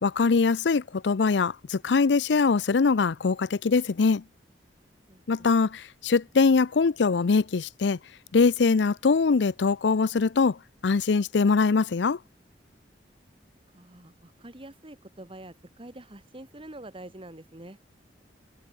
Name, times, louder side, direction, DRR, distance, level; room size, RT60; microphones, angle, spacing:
voice 1, 0.0-4.2 5.3-8.0 8.3-10.6 10.8-12.2, left 4 dB, 75° left, 0.5 m, -22 dB
voice 2, 5.1-5.5 13.7-17.8, right 1 dB, 30° right, 2.2 m, -46 dB
head